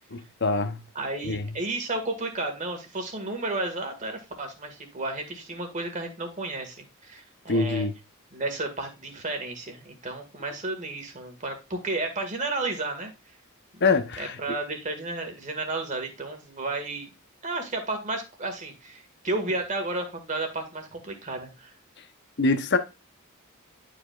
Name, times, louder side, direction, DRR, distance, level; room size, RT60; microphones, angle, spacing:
voice 1, 0.1-0.8 1.2-1.5 7.5-7.9 13.8-14.4 22.4-22.8, left 3 dB, 55° left, 0.9 m, -24 dB
voice 2, 1.0-7.9 8.3-13.1 13.7-13.8 14.2-17.1 17.4-21.7, right 2 dB, 35° right, 1.9 m, -32 dB
11.0 x 5.0 x 2.5 m
head